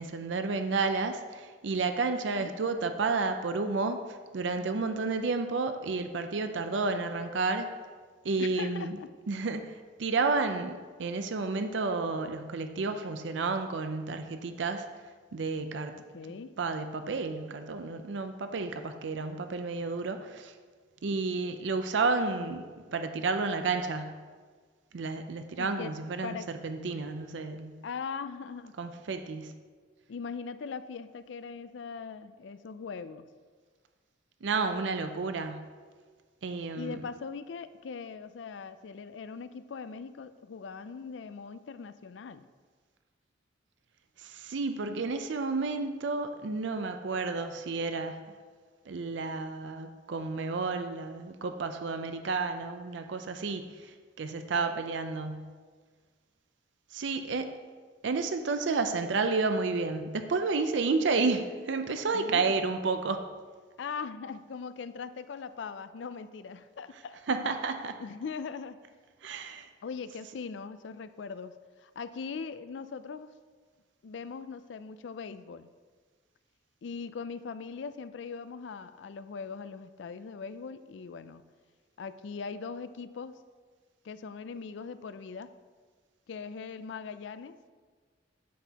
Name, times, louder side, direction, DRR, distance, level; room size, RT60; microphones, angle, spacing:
voice 1, 0.0-4.0 4.3-7.7 8.2-9.0 9.3-14.9 15.3-15.9 16.6-20.5 21.0-24.2 24.9-27.8 28.8-29.5 34.4-35.6 36.4-37.0 44.2-48.2 48.9-55.5 56.9-57.6 58.0-63.3 67.3-68.0 69.2-69.7, right 4 dB, 70° right, 8 dB, 0.5 m, -31 dB
voice 2, 8.4-9.1 15.9-16.5 25.6-25.9 26.2-26.5 27.8-28.8 30.1-33.3 36.8-42.4 54.3-54.8 62.1-62.6 63.8-67.5 68.0-68.8 69.8-73.3 74.0-75.7 76.8-81.4 82.0-83.4 84.0-85.5 86.3-87.6, left 5 dB, 70° left, 13 dB, 0.4 m, -40 dB
9.2 x 8.1 x 2.9 m, 1.5 s
head